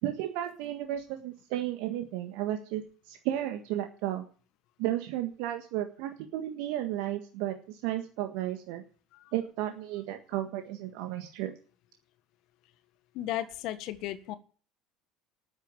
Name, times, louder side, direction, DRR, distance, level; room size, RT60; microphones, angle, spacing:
voice 1, 0.0-4.3 4.8-8.8 9.3-11.5, right 13 dB, 65° right, 6 dB, 1.6 m, -33 dB
voice 2, 13.1-14.3, left 13 dB, 60° left, 13 dB, 1.5 m, -35 dB
13.5 x 10.0 x 8.8 m, 0.40 s
hypercardioid pair, 70°, 0 cm